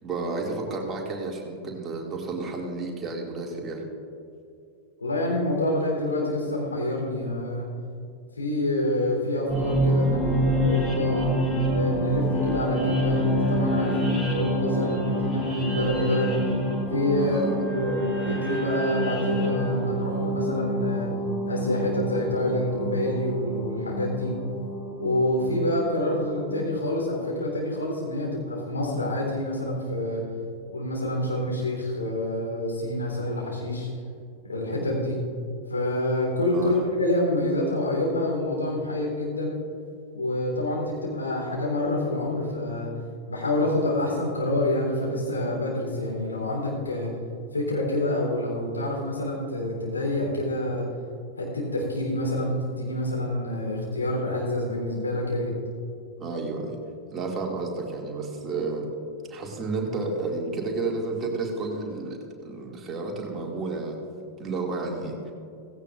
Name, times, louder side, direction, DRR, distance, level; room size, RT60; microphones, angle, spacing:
voice 1, 0.0-3.8 17.2-17.6 36.5-36.7 56.2-56.8 57.1-58.9 59.3-64.0 64.4-65.3, right 3 dB, 25° right, -1 dB, 2.2 m, -31 dB
voice 2, 5.0-7.7 8.4-11.3 11.7-16.4 16.9-17.4 17.7-21.1 21.5-24.3 25.0-30.2 30.7-33.9 34.5-35.2 35.7-39.6 40.1-42.9 43.3-47.1 47.5-50.9 51.4-55.6, left 1 dB, 80° left, -2 dB, 3.6 m, -27 dB
sound 1, 9.5-26.6, equal, 5° left, 3.0 m, -27 dB
16.5 x 16.0 x 2.5 m, 2.4 s
figure-of-eight pair, 90°, 0 cm